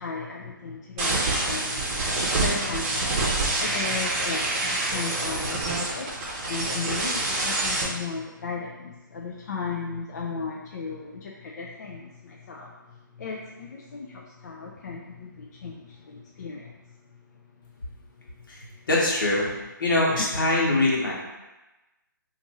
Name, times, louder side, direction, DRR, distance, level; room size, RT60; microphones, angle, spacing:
voice 1, 0.0-2.1 2.4-6.1 6.4-12.7 13.2-16.7 20.1-20.2, left 4 dB, 50° left, -1 dB, 0.4 m, -36 dB
sound 1, 1.0-7.8, right 2 dB, 25° right, 0.7 m, -26 dB
voice 2, 18.5-19.5 19.8-21.1, left 2 dB, 75° left, -4 dB, 1.2 m, -23 dB
2.6 x 2.5 x 4.0 m, 1.1 s
hypercardioid pair, 155°, 11 cm